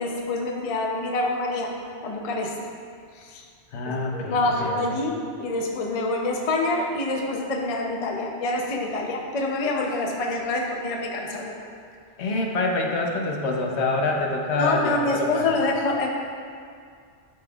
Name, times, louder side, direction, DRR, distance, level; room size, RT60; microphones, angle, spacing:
voice 1, 0.0-1.7 2.0-2.6 3.1-3.4 4.1-11.6 14.6-16.1, left 2 dB, 40° left, 0 dB, 0.6 m, -26 dB
voice 2, 3.7-5.0 12.2-15.6, left 2 dB, 70° left, 1 dB, 1.0 m, -26 dB
10.5 x 5.2 x 2.4 m, 2.2 s
omnidirectional pair, 1.2 m